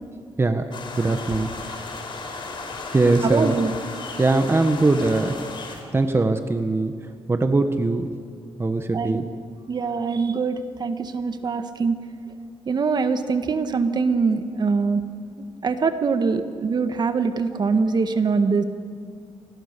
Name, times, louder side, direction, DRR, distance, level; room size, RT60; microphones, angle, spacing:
voice 1, 0.4-1.9 2.9-3.6 4.2-5.4 5.7-6.9 7.3-8.1 8.6-9.3, right 3 dB, 25° right, 7 dB, 1.3 m, -21 dB
sound 1, 0.7-5.8, left 3 dB, 55° left, 4.5 m, -35 dB
voice 2, 3.2-3.7 8.9-9.2 9.7-12.0 12.6-15.0 15.6-18.6, right 4 dB, 45° right, 8 dB, 1.6 m, -23 dB
27.0 x 20.5 x 6.9 m, 2.2 s
cardioid pair, 95°, 10 cm